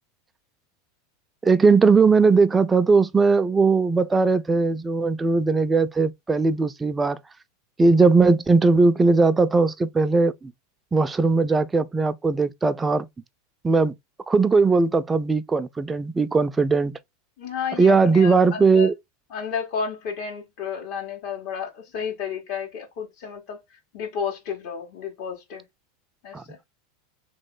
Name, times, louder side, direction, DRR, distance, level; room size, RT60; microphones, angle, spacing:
voice 1, 1.4-7.2 7.8-10.5 10.9-13.1 13.6-13.9 14.3-17.0 17.8-18.9 26.3-26.4, right 4 dB, 15° right, 0.5 m, -19 dB
voice 2, 17.4-18.9 19.3-23.6 23.9-25.6 26.2-26.6, left 6 dB, 60° left, 1.8 m, -32 dB
3.5 x 3.2 x 3.9 m
hypercardioid pair, 115°, 0 cm